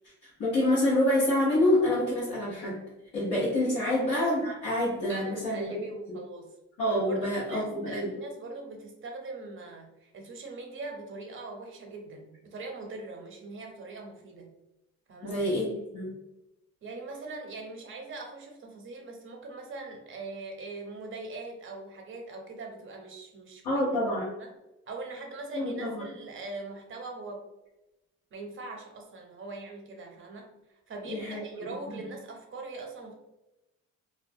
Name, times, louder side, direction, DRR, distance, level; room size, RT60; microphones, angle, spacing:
voice 1, 0.2-2.8 3.1-5.8 6.8-8.1 15.2-16.1 23.6-24.2 25.5-26.0 31.1-32.0, left 1 dB, 85° left, -8 dB, 0.9 m, -27 dB
voice 2, 5.1-6.5 7.1-14.5 15.1-15.4 16.8-23.8 24.4-24.5 24.9-27.5 28.3-33.1, right 3 dB, 45° right, 2 dB, 0.7 m, -41 dB
2.3 x 2.1 x 2.6 m, 0.96 s
cardioid pair, 90°, 30 cm